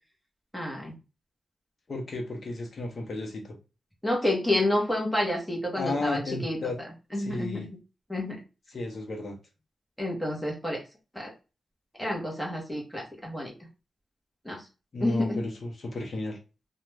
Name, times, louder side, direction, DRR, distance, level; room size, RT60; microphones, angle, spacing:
voice 1, 0.5-0.9 4.0-6.6 7.1-7.7 8.1-8.4 10.0-10.8 11.1-11.3 12.0-13.5 14.4-14.6 15.0-15.4, left 1 dB, 5° left, -1 dB, 0.8 m, -29 dB
voice 2, 1.9-3.6 5.8-6.8 7.2-7.7 8.7-9.4 14.9-16.4, left 2 dB, 40° left, 2 dB, 0.8 m, -33 dB
2.5 x 2.1 x 3.1 m, 0.30 s
wide cardioid pair, 160°, 0 cm